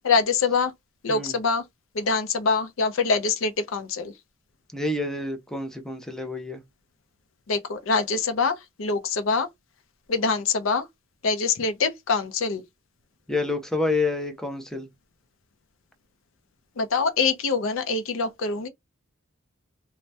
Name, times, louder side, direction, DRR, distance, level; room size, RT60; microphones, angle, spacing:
voice 1, 0.0-0.7 1.0-1.6 1.9-4.1 7.5-9.5 10.1-10.9 11.2-12.6 16.8-18.7, left 4 dB, 75° left, 0.5 m, -24 dB
voice 2, 4.7-6.6 13.3-14.9, left 2 dB, 5° left, 0.5 m, -28 dB
2.6 x 2.1 x 3.2 m
head